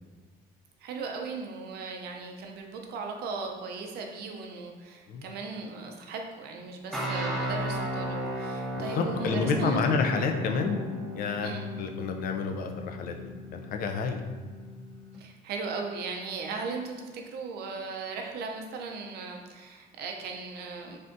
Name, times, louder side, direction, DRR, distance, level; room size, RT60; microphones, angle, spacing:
voice 1, 0.8-9.8 11.4-11.7 15.2-21.0, right 4 dB, 70° right, 2 dB, 0.5 m, -37 dB
sound 1, 6.9-15.2, equal, ahead, 0.6 m, -36 dB
voice 2, 8.8-10.8 11.1-13.2 13.5-14.2, left 4 dB, 60° left, 5 dB, 0.4 m, -29 dB
3.3 x 2.6 x 2.6 m, 1.4 s
cardioid pair, 110°, 17 cm